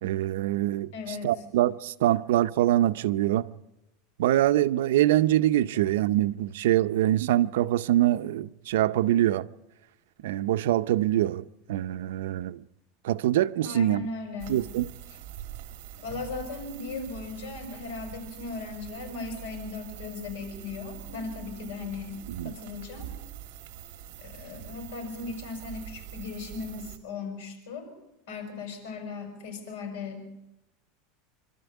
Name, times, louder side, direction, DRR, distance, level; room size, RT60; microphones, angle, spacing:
voice 1, 0.0-3.5 4.2-9.5 10.2-12.6 13.0-14.1 14.5-14.9 22.4-22.5, right 13 dB, 85° right, 0.6 m, -24 dB
voice 2, 0.9-1.3 13.6-14.6 16.0-23.1 24.2-27.9 28.3-30.3, left 4 dB, 75° left, 5.7 m, -37 dB
sound 1, 14.4-27.0, right 11 dB, 55° right, 1.8 m, -44 dB
26.0 x 12.5 x 8.3 m
supercardioid pair, 165°, 0 cm